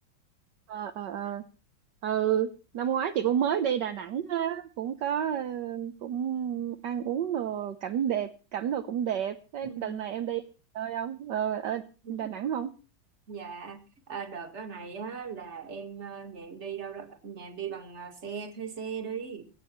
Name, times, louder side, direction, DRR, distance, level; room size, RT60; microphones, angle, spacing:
voice 1, 0.7-1.4 2.0-2.5 2.7-10.4 10.7-11.8 12.1-12.7, right 9 dB, 65° right, 8 dB, 1.5 m, -30 dB
voice 2, 9.6-10.0 12.0-12.3 13.3-19.5, right 6 dB, 35° right, 7 dB, 2.1 m, -39 dB
23.0 x 9.2 x 4.4 m, 0.35 s
omnidirectional pair, 2.1 m